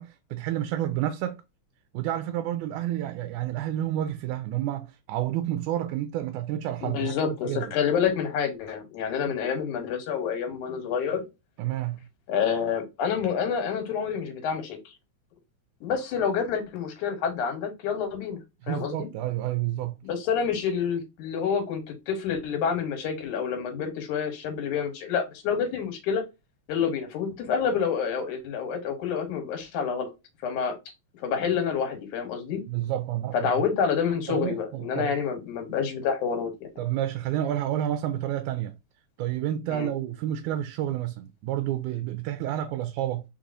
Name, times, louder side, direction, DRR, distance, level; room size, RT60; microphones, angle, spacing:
voice 1, 0.0-1.4 1.9-7.6 9.2-9.4 11.6-12.0 18.6-20.0 32.7-33.5 34.3-35.1 36.8-38.7 39.2-43.2, right 12 dB, 90° right, 2.0 m, -30 dB
voice 2, 6.8-11.3 12.3-14.9 15.8-18.4 18.7-19.1 20.0-26.2 26.7-30.1 30.4-30.8 31.1-32.6 33.4-36.7 39.7-39.9, left 7 dB, 85° left, 2.7 m, -28 dB
4.6 x 4.1 x 2.6 m
omnidirectional pair, 3.4 m